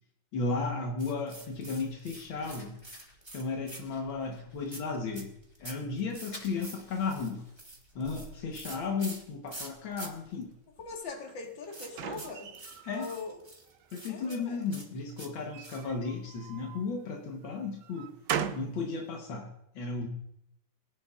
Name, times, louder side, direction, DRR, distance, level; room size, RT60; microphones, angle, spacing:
voice 1, 0.3-2.8 3.3-5.3 5.6-7.4 8.0-10.5 12.8-13.1 13.9-18.1 18.5-20.1, left 4 dB, 90° left, 0 dB, 2.0 m, -34 dB
sound 1, 1.0-4.1 4.7-10.1 10.3-10.4 10.8-16.0, right 1 dB, 15° right, 1.3 m, -47 dB
Fire, 1.3-11.0, equal, 55° left, 5.9 m, -55 dB
voice 2, 10.8-12.5 12.9-13.4 14.1-14.7, left 4 dB, 75° left, 1 dB, 2.4 m, -41 dB
sound 2, 11.3-13.2 13.7-14.4 15.4-16.9 17.4-18.8, right 9 dB, 70° right, 1.2 m, -39 dB
20.5 x 10.5 x 2.4 m, 0.79 s
omnidirectional pair, 2.1 m